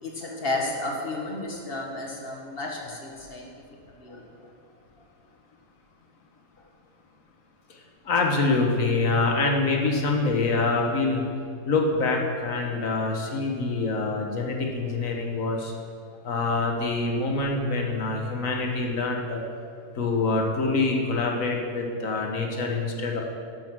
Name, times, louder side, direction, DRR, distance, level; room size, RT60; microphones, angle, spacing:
voice 1, 0.0-3.5 3.9-4.5, left 2 dB, 35° left, -1 dB, 1.8 m, -32 dB
voice 2, 8.0-11.2 11.6-15.7 16.2-19.4 19.9-23.2, left 3 dB, 60° left, 1 dB, 1.6 m, -25 dB
12.0 x 7.0 x 6.1 m, 2.3 s
omnidirectional pair, 1.7 m